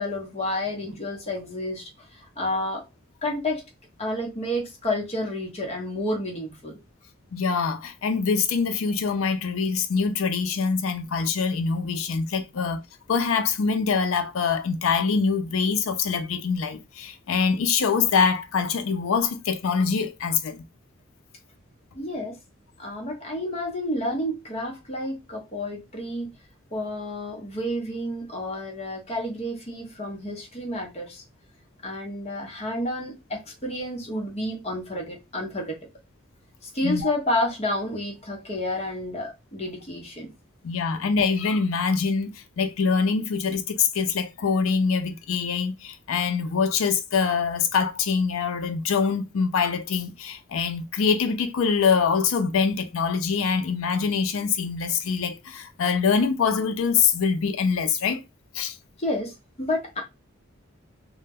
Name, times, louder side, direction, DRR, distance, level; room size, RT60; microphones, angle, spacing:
voice 1, 0.0-2.8 3.2-3.6 4.0-6.8 21.9-22.4 22.8-26.3 26.7-31.2 31.8-35.8 36.6-40.3 59.0-60.0, left 1 dB, 30° left, 0.8 m, -30 dB
voice 2, 7.3-12.8 13.1-20.6 36.8-37.0 40.6-58.2 58.5-58.8, left 5 dB, 80° left, 0.4 m, -24 dB
2.1 x 2.1 x 3.4 m
head